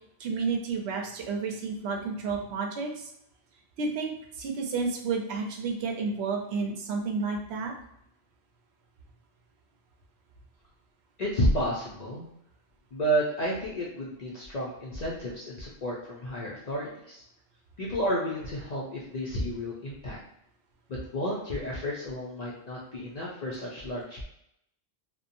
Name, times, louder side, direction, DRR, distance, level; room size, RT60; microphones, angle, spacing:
voice 1, 0.2-3.1 3.8-7.7, right 4 dB, 80° right, 2 dB, 0.8 m, -31 dB
voice 2, 11.2-12.3 12.9-17.2 17.8-20.2 20.9-24.2, equal, 50° left, -5 dB, 0.5 m, -31 dB
2.8 x 2.1 x 2.5 m, 0.78 s
omnidirectional pair, 1.1 m